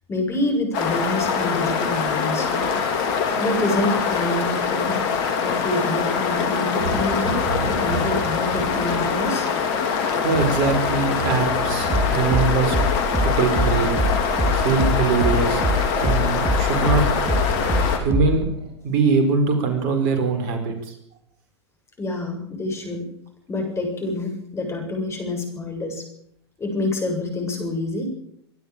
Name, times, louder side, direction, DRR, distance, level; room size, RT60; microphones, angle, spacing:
voice 1, 0.1-2.7 3.4-5.0 5.4-9.5 22.0-23.1 23.5-26.0 26.6-28.1, left 2 dB, 20° left, 4 dB, 7.4 m, -27 dB
sound 1, 0.7-18.0, left 6 dB, 50° left, 4.3 m, -24 dB
sound 2, 6.8-9.1 10.2-12.6 13.6-15.9 16.4-18.8, right 2 dB, 70° right, 7.3 m, -33 dB
voice 2, 10.2-12.7 13.2-13.9 14.5-15.6 16.0-17.0 18.0-18.5 18.8-20.9, right 4 dB, 50° right, 7 dB, 5.0 m, -22 dB
sound 3, 11.8-18.5, equal, 15° right, 3.2 m, -25 dB
24.0 x 12.0 x 8.8 m, 0.71 s
figure-of-eight pair, 100°, 14 cm